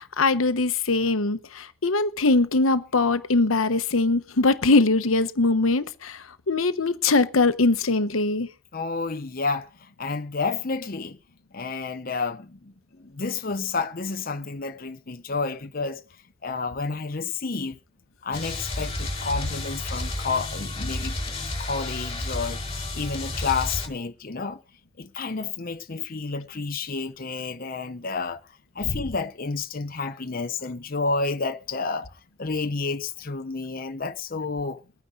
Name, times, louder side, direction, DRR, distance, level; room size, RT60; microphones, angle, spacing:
voice 1, 0.2-8.5 28.9-29.0, left 3 dB, 85° left, 1.0 m, -22 dB
voice 2, 8.7-9.7 10.0-11.2 11.5-16.0 16.4-17.8 18.2-21.2 21.6-24.6 25.0-28.4 28.8-32.1 32.4-34.8, left 4 dB, 45° left, 0.8 m, -30 dB
sound 1, 18.3-23.9, left 2 dB, 25° left, 4.1 m, -31 dB
23.0 x 9.6 x 3.9 m
head